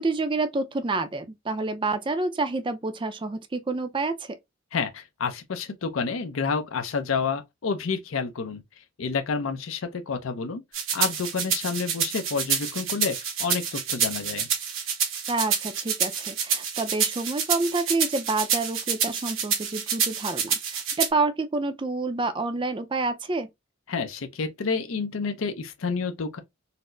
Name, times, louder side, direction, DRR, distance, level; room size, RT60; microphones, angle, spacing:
voice 1, 0.0-4.4 15.3-23.5, right 3 dB, 25° right, 0.4 m, -28 dB
voice 2, 4.7-8.6 9.0-10.6 10.9-14.5 23.9-26.4, left 5 dB, 85° left, 0.5 m, -29 dB
sound 1, 10.7-21.1, right 7 dB, 75° right, 1.0 m, -27 dB
4.1 x 2.0 x 2.6 m
head